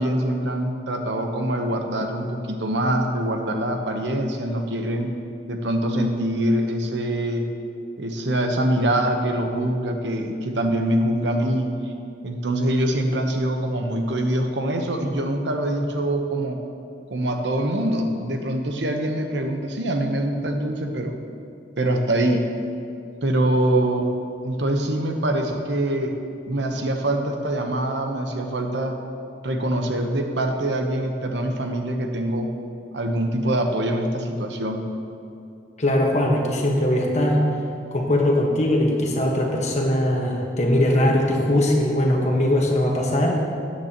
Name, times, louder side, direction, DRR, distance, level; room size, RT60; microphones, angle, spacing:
voice 1, 0.0-5.1 5.5-7.5 8.0-11.7 12.2-16.6 17.1-21.2 21.8-22.5 23.2-24.1 24.4-26.1 26.5-28.9 29.4-32.5 32.9-34.8, right 1 dB, 75° right, 4 dB, 0.9 m, -24 dB
voice 2, 35.8-37.4 37.9-43.4, left 1 dB, 40° left, 0 dB, 1.3 m, -20 dB
13.0 x 9.2 x 3.0 m, 2.5 s
head